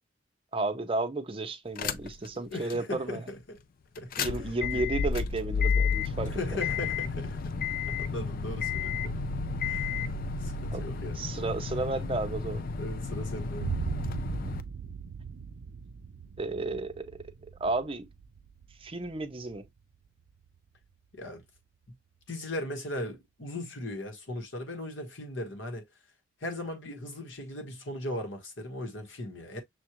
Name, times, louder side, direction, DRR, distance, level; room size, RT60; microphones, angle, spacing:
voice 1, 0.5-3.2 4.2-6.3 10.7-10.8 11.1-12.6 16.4-17.2 17.6-18.1 18.8-19.6, right 2 dB, 30° right, 0.6 m, -32 dB
sound 1, 1.8-2.3 2.7-2.8 4.0-14.6, left 5 dB, 45° left, 0.4 m, -32 dB
voice 2, 2.3-3.6 4.0-4.9 6.2-7.6 7.9-9.1 9.6-10.0 10.4-11.2 12.8-13.7 21.1-21.4 22.3-25.8 26.4-29.6, left 1 dB, 75° left, 1.3 m, -38 dB
Boom, 13.6-21.4, right 6 dB, 75° right, 0.4 m, -40 dB
6.3 x 2.4 x 2.9 m
head